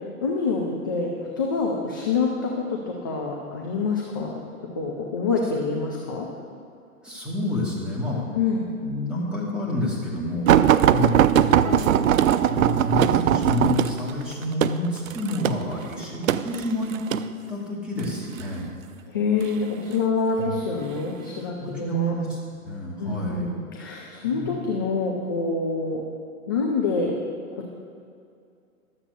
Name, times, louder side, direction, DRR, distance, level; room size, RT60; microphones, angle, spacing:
voice 1, 0.2-2.3 2.5-4.4 4.7-6.3 8.4-8.7 19.1-22.1 23.0-26.0 26.5-27.1 27.5-27.7, left 4 dB, 15° left, -1 dB, 0.3 m, -26 dB
voice 2, 7.0-8.2 8.8-10.6 10.9-17.0 17.5-18.7 20.4-20.6 21.4-22.4 22.6-23.5 24.2-24.5, left 1 dB, ahead, -6 dB, 2.5 m, -29 dB
sound 1, 10.5-17.3 18.0-18.5 19.4-20.1 20.8-21.0 21.4-21.5, right 10 dB, 65° right, 0.6 m, -20 dB
12.5 x 7.3 x 6.6 m, 2.4 s
hypercardioid pair, 130°, 44 cm